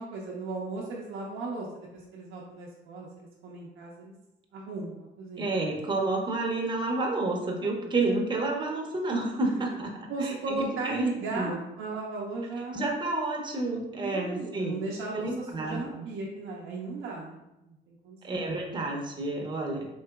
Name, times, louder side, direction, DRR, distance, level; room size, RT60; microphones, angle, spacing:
voice 1, 0.0-4.1 4.5-5.6 7.2-7.9 9.5-9.6 10.1-12.9 14.0-18.6, right 3 dB, 80° right, -3 dB, 0.5 m, -36 dB
voice 2, 5.4-11.1 11.4-11.6 12.7-14.8 15.1-15.8 18.2-19.9, right 2 dB, 25° right, 0 dB, 0.6 m, -30 dB
3.9 x 2.7 x 2.3 m, 0.94 s
cardioid pair, 90°, 20 cm